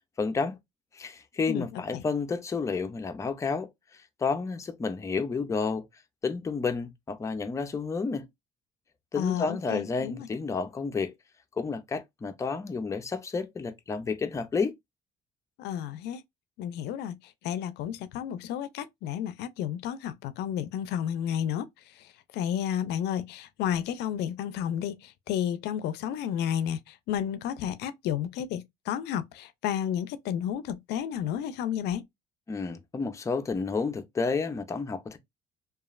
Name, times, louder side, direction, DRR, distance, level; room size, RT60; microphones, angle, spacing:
voice 1, 0.2-0.6 0.9-3.7 4.2-5.9 6.2-8.3 9.1-11.1 11.6-14.7 32.5-35.2, left 4 dB, 20° left, 0.4 m, -30 dB
voice 2, 1.5-2.0 9.2-10.3 15.6-16.2 16.6-17.2 17.4-21.7 22.0-22.1 22.3-32.0, left 9 dB, 80° left, 0.4 m, -32 dB
3.0 x 2.3 x 2.3 m
cardioid pair, 110°, 17 cm